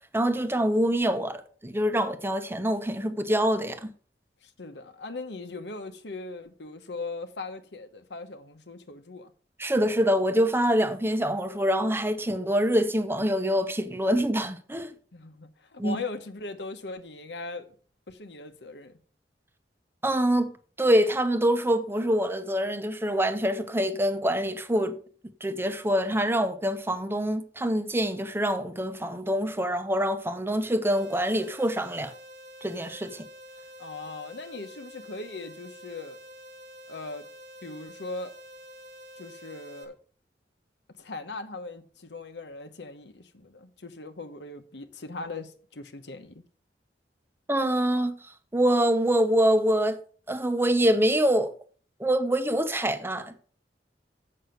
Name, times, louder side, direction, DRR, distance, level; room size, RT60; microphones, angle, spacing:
voice 1, 0.1-3.9 9.6-14.9 15.8-16.0 20.0-20.5 20.8-25.0 25.4-32.1 32.6-33.2 47.5-48.2 48.5-50.0 50.3-51.5 52.0-53.4, equal, 15° right, 0.9 m, -25 dB
voice 2, 4.4-9.3 15.1-17.7 18.1-19.0 33.8-36.2 36.9-37.3 37.6-38.3 39.2-40.0 41.0-46.4, left 3 dB, 75° left, 1.1 m, -39 dB
sound 1, 30.8-39.8, equal, 80° right, 2.4 m, -47 dB
7.8 x 6.5 x 6.7 m
head